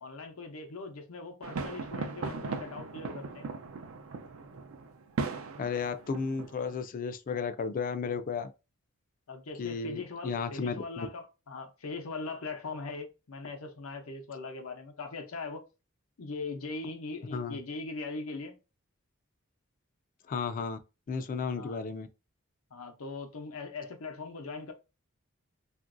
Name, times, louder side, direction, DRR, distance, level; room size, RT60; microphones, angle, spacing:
voice 1, 0.0-3.5 9.3-15.6 16.2-18.6 21.6-21.8 22.7-24.7, left 3 dB, 90° left, 0.7 m, -40 dB
sound 1, 1.4-6.7, right 4 dB, 75° right, 0.5 m, -38 dB
voice 2, 5.6-8.5 9.6-11.1 17.3-17.6 20.3-20.8 21.1-22.1, left 5 dB, 40° left, 0.3 m, -33 dB
2.9 x 2.5 x 2.4 m
head